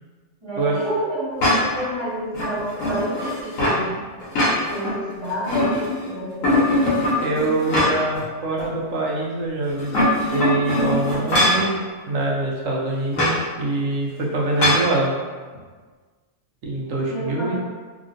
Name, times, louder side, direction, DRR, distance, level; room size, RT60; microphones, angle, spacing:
voice 1, 0.4-3.9 4.7-5.7 6.0-6.8 17.1-17.5, equal, 20° right, -13 dB, 1.4 m, -29 dB
sound 1, 1.4-1.9 2.3-3.8 4.2-4.9 5.3-6.0 6.4-8.2 8.6-8.7 9.7-11.7 13.1-13.4 14.6-14.9, left 1 dB, 80° left, 1.2 m, -21 dB
voice 2, 7.2-10.1 10.3-11.8 12.1-15.1 15.5-15.6 16.6-17.5, right 2 dB, 75° right, -3 dB, 1.0 m, -24 dB
2.9 x 2.6 x 2.5 m, 1.4 s
omnidirectional pair, 1.4 m